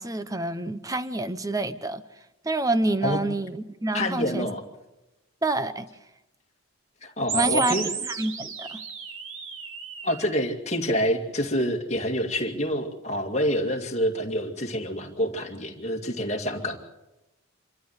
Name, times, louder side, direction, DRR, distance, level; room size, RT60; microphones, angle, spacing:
voice 1, 0.0-2.0 2.4-4.5 5.4-5.9 7.3-7.7 8.0-8.8, right 2 dB, 15° right, 0.8 m, -27 dB
voice 2, 3.9-4.6 7.0-7.9 10.0-16.8, equal, 30° left, 2.3 m, -27 dB
sound 1, 7.3-10.3, right 6 dB, 70° right, 2.2 m, -32 dB
26.5 x 13.5 x 8.1 m
head